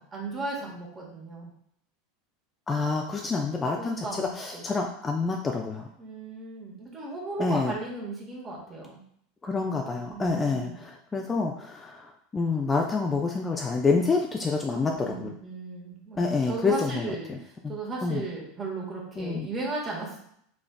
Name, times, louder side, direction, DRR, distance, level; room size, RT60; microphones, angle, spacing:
voice 1, 0.1-1.5 3.8-4.6 6.0-9.0 10.1-10.8 14.9-20.2, right 3 dB, 25° right, -3 dB, 1.5 m, -36 dB
voice 2, 2.7-5.9 7.4-7.7 9.4-15.3 16.2-17.4 17.6-17.7 18.0-18.2 19.2-19.5, left 4 dB, 20° left, 2 dB, 0.4 m, -28 dB
5.0 x 3.4 x 2.2 m, 0.68 s
figure-of-eight pair, 80°, 0 cm